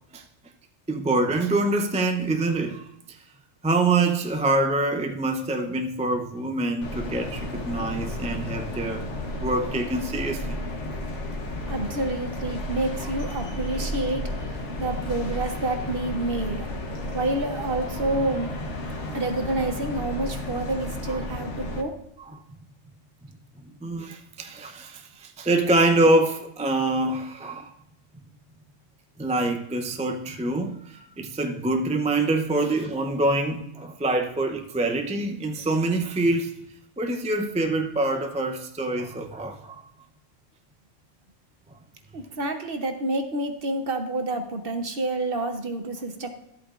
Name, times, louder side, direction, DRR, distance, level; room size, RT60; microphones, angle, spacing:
voice 1, 0.9-3.2 3.6-9.1 9.4-10.6 13.0-13.1 21.1-21.2 22.3-22.4 23.8-27.7 29.2-36.7 37.0-39.8, right 2 dB, 10° right, 0.4 m, -25 dB
sound 1, 6.8-21.8, left 1 dB, 65° left, 1.5 m, -33 dB
voice 2, 11.7-14.3 14.8-16.7 17.1-18.5 19.1-21.9 42.1-46.3, right 2 dB, 50° right, 1.1 m, -28 dB
13.0 x 8.4 x 2.5 m
omnidirectional pair, 1.3 m